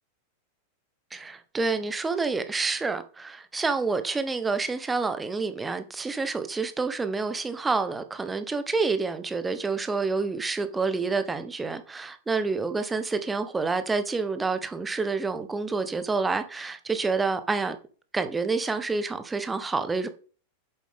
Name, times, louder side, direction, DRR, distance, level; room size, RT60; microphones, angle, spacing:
voice 1, 1.1-17.8 18.1-20.1, right 4 dB, 10° right, 0.9 m, -28 dB
8.4 x 7.3 x 3.6 m
figure-of-eight pair, 90°, 0 cm